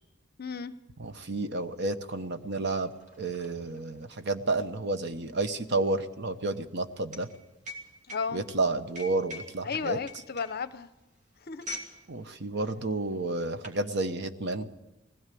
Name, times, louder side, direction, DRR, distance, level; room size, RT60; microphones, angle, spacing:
voice 1, 0.4-0.7 8.1-8.4 9.6-10.9 11.5-11.7, left 5 dB, 50° left, 14 dB, 0.7 m, -33 dB
voice 2, 1.0-7.3 8.3-10.0 12.1-14.7, right 2 dB, 55° right, 10 dB, 1.0 m, -31 dB
sound 1, 1.7-1.8 2.0-12.0 12.3-12.5 13.2-13.8, left 1 dB, 40° right, 2.9 m, -45 dB
20.0 x 16.5 x 8.4 m, 1.0 s
head